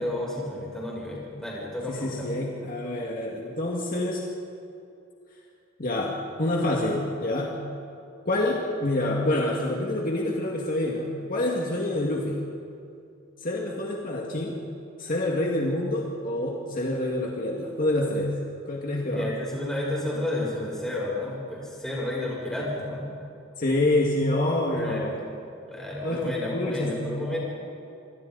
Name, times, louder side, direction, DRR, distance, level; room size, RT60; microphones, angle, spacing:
voice 1, 0.0-2.3 19.1-23.0 24.7-25.1 25.7-27.4, left 1 dB, 5° left, -6 dB, 7.3 m, -31 dB
voice 2, 1.9-4.2 5.8-7.6 8.3-12.5 13.4-14.6 15.0-18.3 18.7-19.3 23.6-25.1 26.0-27.2, left 1 dB, 45° left, -2 dB, 2.1 m, -27 dB
28.0 x 25.5 x 4.1 m, 2.6 s
head